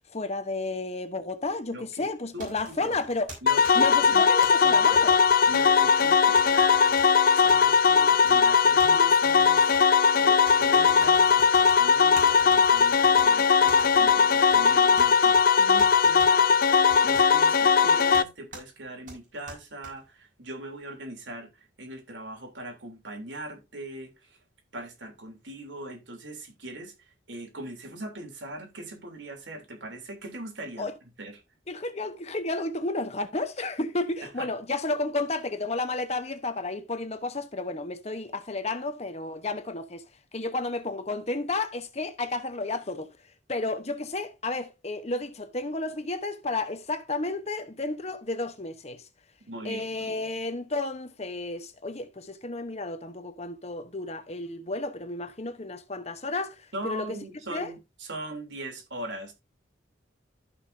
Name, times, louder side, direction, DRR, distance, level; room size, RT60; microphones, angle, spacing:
voice 1, 0.1-3.3 3.7-5.2 30.8-30.9 31.7-40.0 40.3-43.1 43.5-49.0 49.6-56.5 56.8-57.2 57.5-57.7, left 2 dB, 35° left, 1.1 m, -32 dB
voice 2, 1.7-2.1 2.3-3.0 3.4-4.3 4.6-5.0 5.5-7.0 7.3-24.4 24.7-30.9 31.2-31.4 34.2-34.5 49.4-50.4 56.7-59.3, right 1 dB, 85° right, 3.4 m, -41 dB
sound 1, 2.4-4.5 4.9-6.1 6.4-7.1 7.5-8.4 8.8-9.8 10.5-11.8 12.2-13.3 13.7-14.6 15.0-15.4 15.8-16.3 16.9-17.3 18.1-18.2 18.5-18.6 19.1-19.9, right 3 dB, 45° right, 5.7 m, -44 dB
sound 2, 3.5-18.2, left 6 dB, 55° left, 0.5 m, -19 dB
14.5 x 5.8 x 2.8 m
head